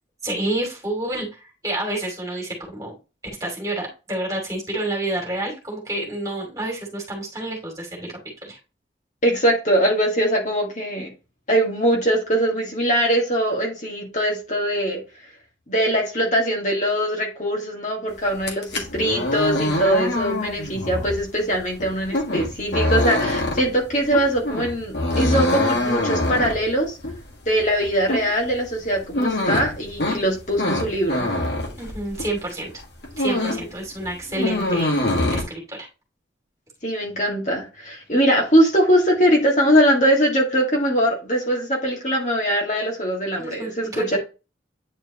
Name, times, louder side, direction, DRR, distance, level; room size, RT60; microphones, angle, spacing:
voice 1, 0.2-2.9 3.4-8.1 8.4-8.6 31.8-32.7 33.2-34.9 35.3-35.6 43.4-44.2, right 1 dB, 20° right, 0 dB, 2.7 m, -29 dB
voice 2, 9.2-11.1 11.5-15.0 15.7-26.9 27.5-31.3 36.8-44.2, equal, 40° left, 0 dB, 2.0 m, -21 dB
sound 1, 18.3-32.4 32.8-33.7 34.0-35.4, left 1 dB, 65° left, 1.9 m, -24 dB
9.4 x 4.5 x 3.0 m, 0.29 s
head